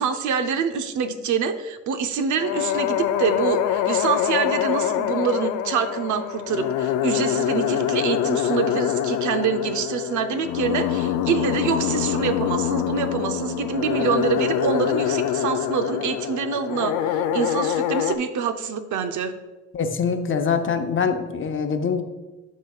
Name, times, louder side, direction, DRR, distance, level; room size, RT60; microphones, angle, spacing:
voice 1, 0.0-19.3, right 6 dB, 75° right, 9 dB, 0.7 m, -25 dB
sound 1, 2.4-18.2, left 10 dB, 90° left, 0.5 m, -25 dB
voice 2, 19.7-22.0, left 6 dB, 40° left, 6 dB, 0.8 m, -24 dB
12.0 x 4.1 x 2.4 m, 1.1 s
cardioid pair, 90°, 30 cm